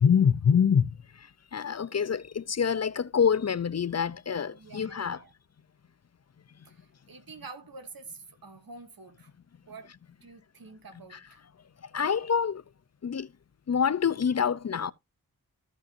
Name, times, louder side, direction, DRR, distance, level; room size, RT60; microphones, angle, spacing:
voice 1, 0.0-5.2 11.1-11.2 11.9-12.6 13.0-13.3 13.7-14.9, left 7 dB, 45° left, 0.6 m, -26 dB
voice 2, 4.5-5.3 6.7-9.3 9.7-9.9 10.2-11.4, right 4 dB, 70° right, 2.1 m, -47 dB
14.5 x 5.4 x 2.7 m
cardioid pair, 45°, 36 cm